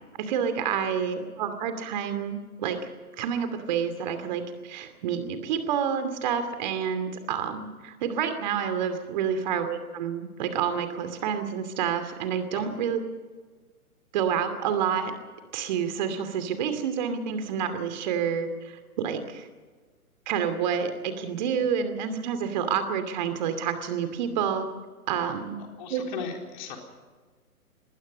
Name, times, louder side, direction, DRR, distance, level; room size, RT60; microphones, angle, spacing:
voice 1, 0.2-2.8 3.2-13.0 14.1-15.1 15.5-19.5 20.3-24.7 25.1-25.6 25.9-26.0, right 7 dB, 30° right, 8 dB, 2.6 m, -28 dB
voice 2, 25.8-26.8, left 6 dB, 30° left, 2 dB, 4.0 m, -36 dB
25.5 x 20.5 x 5.4 m, 1.4 s
figure-of-eight pair, 130°, 44 cm